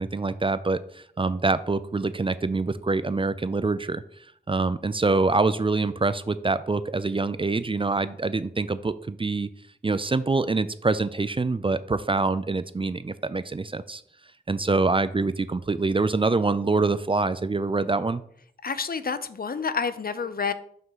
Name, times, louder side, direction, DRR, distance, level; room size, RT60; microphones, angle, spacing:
voice 1, 0.0-4.0 4.5-9.5 9.8-14.0 14.5-18.2, right 3 dB, 30° right, 14 dB, 0.4 m, -25 dB
voice 2, 18.6-20.5, left 5 dB, 55° left, 13 dB, 0.5 m, -29 dB
5.6 x 3.6 x 5.6 m, 0.63 s
wide cardioid pair, 55°, 18 cm